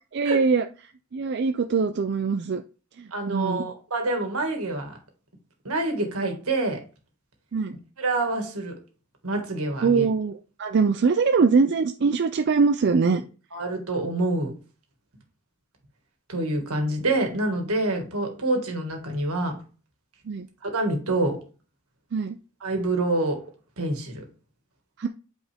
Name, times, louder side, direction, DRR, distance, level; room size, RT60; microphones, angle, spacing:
voice 1, 0.1-0.6 1.1-2.6 3.0-3.6 7.5-7.7 9.8-13.2 20.3-20.5 22.1-22.4 25.0-25.1, right 5 dB, 50° right, 7 dB, 0.4 m, -22 dB
voice 2, 3.1-4.9 5.6-6.8 8.0-8.7 9.2-10.1 13.1-13.2 13.5-14.5 16.3-19.6 20.6-21.4 22.6-23.4 23.8-24.2, right 2 dB, 80° right, 3 dB, 1.9 m, -26 dB
8.7 x 4.4 x 3.5 m, 0.36 s
head